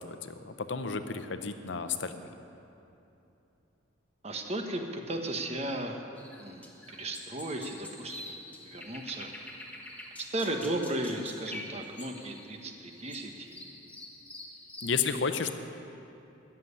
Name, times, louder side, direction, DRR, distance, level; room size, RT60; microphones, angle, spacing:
voice 1, 0.0-2.2 14.8-15.5, left 5 dB, 65° left, 9 dB, 0.7 m, -32 dB
voice 2, 4.2-6.0 6.4-8.4 8.6-9.3 10.2-13.7, right 1 dB, 30° right, 3 dB, 1.2 m, -35 dB
sound 1, 6.2-15.0, left 1 dB, 10° left, 1.4 m, -47 dB
13.5 x 7.6 x 9.9 m, 2.9 s
head